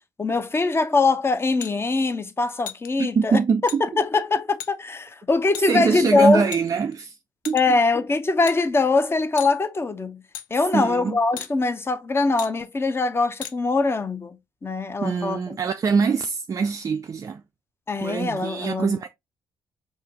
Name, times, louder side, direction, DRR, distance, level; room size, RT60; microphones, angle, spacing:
voice 1, 0.2-3.4 3.8-6.5 7.5-10.2 10.5-14.4 14.6-15.4 17.9-18.9, left 3 dB, 25° left, 0.7 m, -22 dB
sound 1, 1.6-1.7 2.7-2.9 3.7-3.8 4.6-4.7 5.5-5.7 6.5-7.0 7.5-7.8 8.5-8.6 9.4-9.6 10.3-10.5 11.4-11.5 12.4-12.5 13.4-13.6, left 10 dB, 75° left, 0.4 m, -35 dB
voice 2, 3.0-3.8 5.7-7.2 7.5-7.6 10.7-11.2 15.0-17.4 18.0-19.1, right 5 dB, 30° right, 0.4 m, -23 dB
4.9 x 2.7 x 2.9 m
figure-of-eight pair, 45°, 10 cm